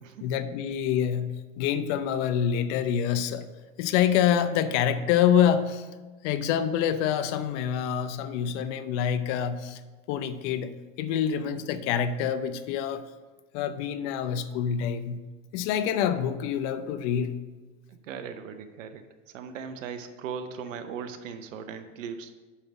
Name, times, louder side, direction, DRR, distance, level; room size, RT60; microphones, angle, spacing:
voice 1, 0.2-3.5 3.8-5.9 6.2-9.8 10.1-13.0 13.5-15.2 15.5-17.4, left 9 dB, 65° left, 12 dB, 0.7 m, -26 dB
voice 2, 18.0-19.0 19.3-22.3, right 6 dB, 90° right, 9 dB, 0.7 m, -38 dB
5.7 x 5.4 x 5.8 m, 1.2 s
supercardioid pair, 100°, 38 cm